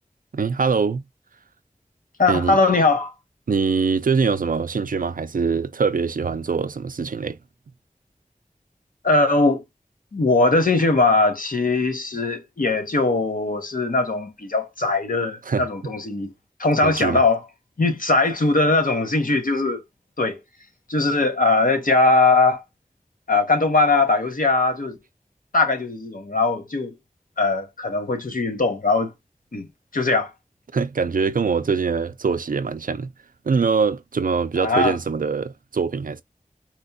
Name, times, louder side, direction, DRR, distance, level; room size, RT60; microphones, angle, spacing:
voice 1, 0.3-1.0 2.3-2.6 3.5-7.4 15.5-15.6 16.8-17.2 30.7-33.1 33.5-36.2, right 5 dB, 80° right, 0.4 m, -23 dB
voice 2, 2.2-3.1 9.0-9.6 10.1-16.3 16.6-17.4 17.8-19.8 20.2-20.4 20.9-22.6 23.3-25.0 25.5-26.9 27.4-29.1 29.5-30.3 34.6-35.0, left 3 dB, 75° left, 0.8 m, -20 dB
4.3 x 2.2 x 2.6 m
wide cardioid pair, 50°, 14 cm